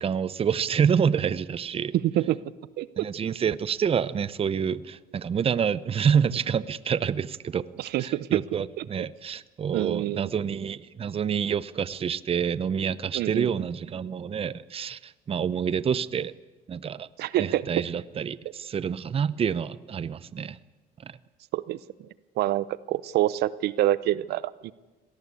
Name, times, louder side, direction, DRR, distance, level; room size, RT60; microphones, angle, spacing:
voice 1, 0.0-1.9 3.0-7.6 8.0-16.3 16.7-17.1 17.4-20.6 21.0-21.1, right 7 dB, 35° right, 17 dB, 0.7 m, -27 dB
voice 2, 2.0-2.4 2.8-2.9 7.8-8.4 8.8-9.1 9.7-10.3 13.1-13.5 17.2-17.7 21.5-21.8 22.4-24.7, right 14 dB, 75° right, 18 dB, 0.7 m, -26 dB
25.5 x 18.0 x 8.4 m, 1.2 s
cardioid pair, 110°, 17 cm